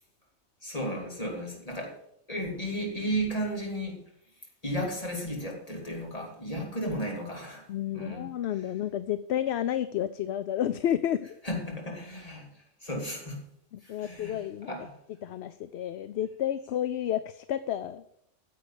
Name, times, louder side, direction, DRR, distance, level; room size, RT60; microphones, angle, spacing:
voice 1, 0.6-2.0 2.3-4.0 4.6-8.3 11.4-12.5 12.8-13.4 13.8-14.9, equal, 30° left, 0 dB, 3.4 m, -34 dB
voice 2, 7.7-11.4 13.7-14.8 15.2-18.0, left 11 dB, 65° left, 13 dB, 0.8 m, -31 dB
10.5 x 7.7 x 8.5 m, 0.72 s
omnidirectional pair, 1.3 m